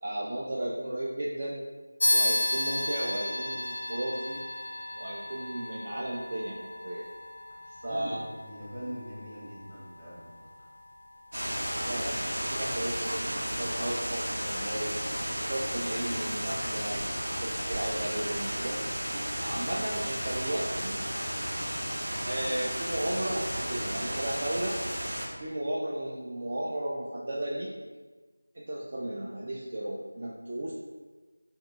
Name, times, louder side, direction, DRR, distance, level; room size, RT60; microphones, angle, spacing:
voice 1, 0.0-1.6 2.1-4.4 4.9-7.0 7.8-8.2 11.9-14.9 15.4-18.8 19.4-21.1 22.2-24.8 25.4-27.7 28.5-30.7, right 1 dB, 35° right, -4 dB, 0.3 m, -34 dB
sound 1, 2.0-12.0, left 1 dB, 50° left, 0.4 m, -34 dB
voice 2, 7.8-10.5, equal, 20° right, -8 dB, 0.7 m, -42 dB
sound 2, 11.3-25.3, equal, 75° right, 1.4 m, -33 dB
4.2 x 2.2 x 2.2 m, 1.3 s
figure-of-eight pair, 170°, 0 cm